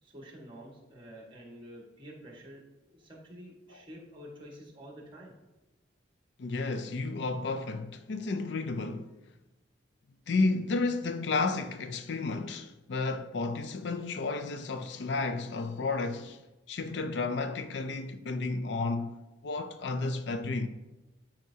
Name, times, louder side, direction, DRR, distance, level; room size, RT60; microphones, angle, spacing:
voice 1, 0.0-5.3, equal, 25° right, 1.6 m, -49 dB
voice 2, 6.4-9.1 10.3-16.4 16.7-19.2 19.4-20.7, left 3 dB, 65° left, 0.4 m, -32 dB
12.0 x 4.4 x 2.8 m
head